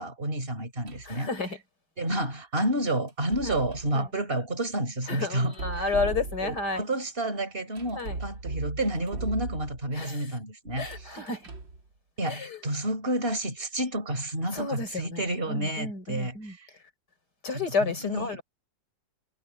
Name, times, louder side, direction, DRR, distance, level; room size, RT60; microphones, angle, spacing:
voice 1, 0.0-1.3 2.0-5.9 6.4-11.2 12.2-16.7 17.5-18.4, right 1 dB, 30° right, 5.4 m, -30 dB
sound 1, 0.9-1.2 3.1-4.0 5.4-6.8 7.8-9.9 10.7-11.8, right 3 dB, 85° right, 4.1 m, -37 dB
voice 2, 1.1-1.6 3.5-3.6 3.9-4.0 5.1-6.8 7.9-8.2 10.0-10.2 10.8-11.4 12.3-12.6 14.5-15.2 15.5-16.5 17.4-18.4, left 3 dB, 60° left, 5.8 m, -31 dB
omnidirectional pair, 2.0 m